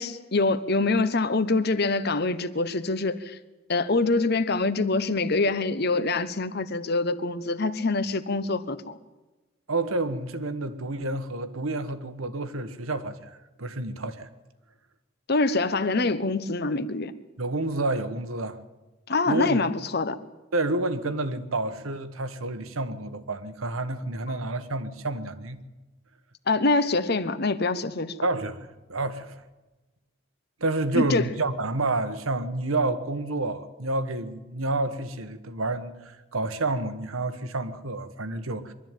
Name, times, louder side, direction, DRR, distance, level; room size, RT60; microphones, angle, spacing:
voice 1, 0.0-3.4 3.7-9.0 15.3-17.1 19.1-20.2 24.3-24.4 26.5-28.2 30.9-31.3, left 3 dB, 50° left, 1.0 m, -25 dB
voice 2, 9.7-14.3 17.4-18.6 19.3-19.6 20.5-25.6 28.2-29.4 30.6-38.7, right 2 dB, 85° right, 1.4 m, -29 dB
23.0 x 12.5 x 9.2 m
head